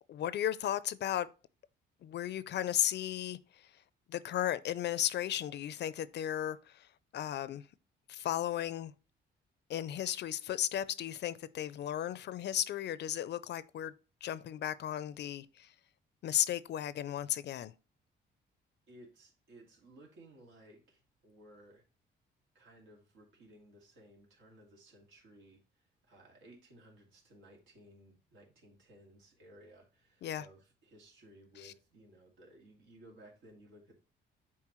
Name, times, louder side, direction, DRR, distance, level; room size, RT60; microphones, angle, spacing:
voice 1, 0.1-1.3 2.0-3.7 4.1-6.9 7.1-7.6 8.1-8.9 9.7-13.9 14.2-15.7 16.2-17.7 30.2-30.4 31.6-31.7, left 11 dB, 60° left, 0.4 m, -35 dB
voice 2, 18.9-21.8 22.5-33.9, right 1 dB, 90° right, 2.2 m, -58 dB
7.4 x 4.5 x 3.0 m
cardioid pair, 90°, 20 cm